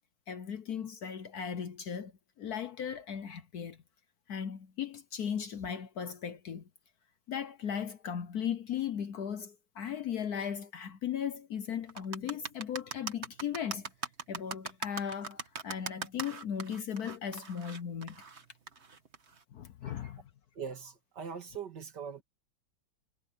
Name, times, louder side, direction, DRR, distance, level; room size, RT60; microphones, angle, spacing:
voice 1, 0.3-2.1 2.4-3.8 4.3-6.6 7.3-13.9 14.3-18.2 19.5-20.2, left 8 dB, 60° left, 1.2 m, -37 dB
sound 1, 11.9-19.4, right 5 dB, 35° right, 1.6 m, -40 dB
voice 2, 20.6-22.2, right 7 dB, 60° right, 2.7 m, -42 dB
omnidirectional pair, 2.1 m